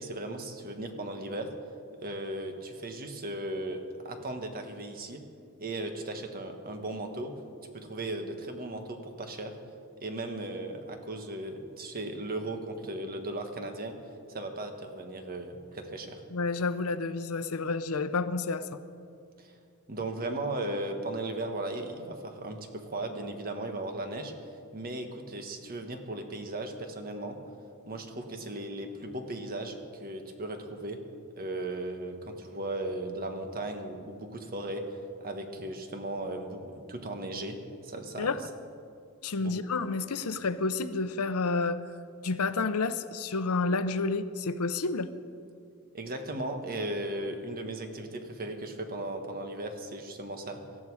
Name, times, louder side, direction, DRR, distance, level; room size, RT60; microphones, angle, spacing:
voice 1, 0.0-1.5 2.0-5.2 5.6-7.3 7.7-9.6 10.0-14.0 14.3-16.2 19.4-19.6 19.9-24.3 24.7-27.4 27.9-31.0 31.4-37.6 37.8-38.3 39.4-39.5 45.9-50.6, right 1 dB, 45° right, 5 dB, 1.5 m, -36 dB
voice 2, 16.3-18.8 38.2-38.4 39.2-41.8 42.2-45.1, left 3 dB, 80° left, 12 dB, 0.7 m, -30 dB
18.5 x 13.5 x 4.8 m, 2.4 s
head